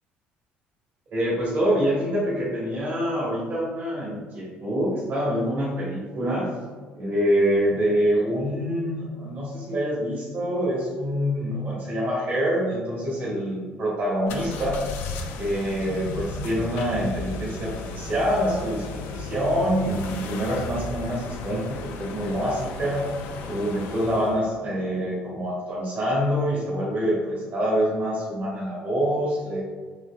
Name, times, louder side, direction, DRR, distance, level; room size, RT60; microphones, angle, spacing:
voice 1, 1.1-6.5 6.9-14.8 15.4-23.1 23.5-29.6, equal, 55° right, -6 dB, 1.1 m, -26 dB
sound 1, 14.3-24.4, left 3 dB, 75° left, 0.3 m, -35 dB
3.8 x 2.7 x 2.2 m, 1.4 s
supercardioid pair, 90°, 4 cm